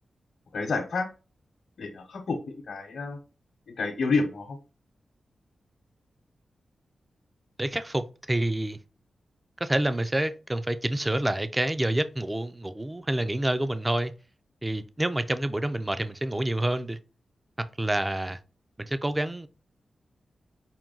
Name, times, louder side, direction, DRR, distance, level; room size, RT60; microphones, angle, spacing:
voice 1, 0.5-1.1 1.8-3.2 3.8-4.6, left 4 dB, 75° left, 0.9 m, -29 dB
voice 2, 7.6-8.8 9.6-14.1 14.6-17.0 17.6-18.4 18.8-19.5, right 1 dB, 15° right, 0.5 m, -28 dB
5.8 x 2.3 x 3.8 m
cardioid pair, 75°, 0 cm